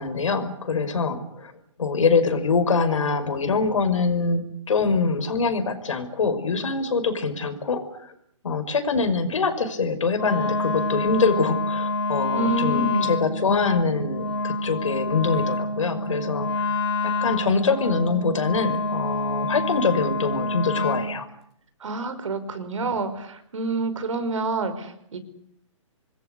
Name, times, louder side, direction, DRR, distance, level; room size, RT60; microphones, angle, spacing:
voice 1, 0.0-1.5 1.8-8.1 8.4-16.5 17.0-21.3, left 4 dB, 75° left, 10 dB, 5.8 m, -24 dB
Wind instrument woodwind instrument, 10.1-21.1, left 2 dB, 55° left, 4.8 m, -27 dB
voice 2, 12.3-13.2 21.8-25.2, right 2 dB, 75° right, 11 dB, 5.4 m, -28 dB
26.5 x 21.5 x 8.2 m, 0.73 s
hypercardioid pair, 150°, 16 cm